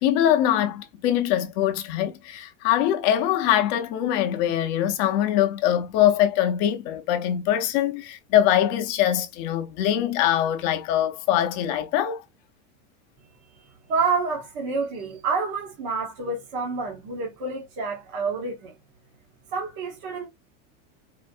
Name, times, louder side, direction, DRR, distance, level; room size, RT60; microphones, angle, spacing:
voice 1, 0.0-12.2, left 11 dB, 35° left, 0.6 m, -23 dB
voice 2, 13.5-18.7 19.5-20.3, right 4 dB, 45° right, 1.1 m, -28 dB
4.3 x 2.5 x 2.5 m
supercardioid pair, 175°, 37 cm